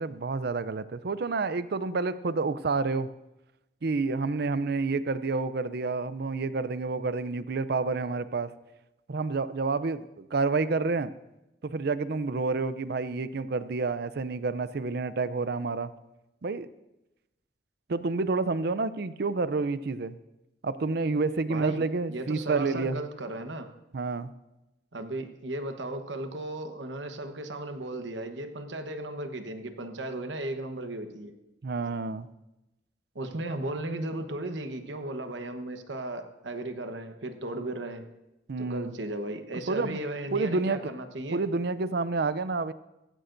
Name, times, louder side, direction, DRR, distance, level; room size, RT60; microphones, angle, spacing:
voice 1, 0.0-3.1 3.8-8.5 9.1-11.1 11.6-15.9 16.4-16.7 17.9-20.2 20.6-23.0 23.9-24.3 31.6-32.3 38.5-38.9 39.7-40.0 40.3-40.9 41.3-42.7, right 3 dB, 60° right, 14 dB, 0.5 m, -29 dB
voice 2, 21.5-23.7 24.9-31.3 33.1-38.0 38.6-41.4, right 1 dB, 85° right, 7 dB, 1.2 m, -36 dB
15.5 x 15.5 x 2.6 m, 0.94 s
head